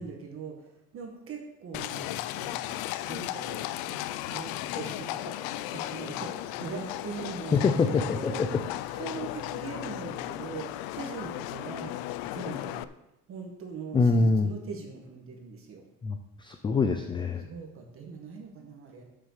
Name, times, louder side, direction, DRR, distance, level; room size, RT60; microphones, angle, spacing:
voice 1, 0.0-2.7 3.0-3.6 4.2-8.4 8.9-12.0 12.3-12.9 13.3-15.9 17.4-19.0, right 5 dB, 40° right, 2 dB, 1.7 m, -41 dB
Livestock farm animals working animals, 1.7-12.8, left 15 dB, 85° left, 0.5 m, -35 dB
sound 1, 3.5-9.2, left 2 dB, 50° left, 2.7 m, -50 dB
voice 2, 7.5-8.3 8.9-9.0 13.9-14.5 16.0-17.4, left 4 dB, 15° left, 6 dB, 0.3 m, -25 dB
7.3 x 6.8 x 6.6 m, 0.88 s
cardioid pair, 165°, 35 cm